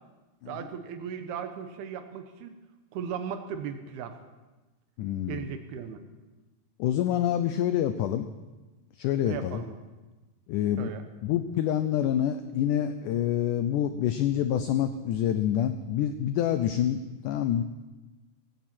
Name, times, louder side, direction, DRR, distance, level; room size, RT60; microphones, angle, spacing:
voice 1, 0.5-2.6 2.9-4.1 5.3-6.0 9.3-9.8 10.8-11.0, right 7 dB, 90° right, 8 dB, 3.0 m, -37 dB
voice 2, 5.0-5.5 6.8-8.3 9.0-9.6 10.5-10.9 11.2-17.6, left 10 dB, 90° left, 10 dB, 1.8 m, -27 dB
17.0 x 16.0 x 4.4 m, 1.2 s
omnidirectional pair, 4.4 m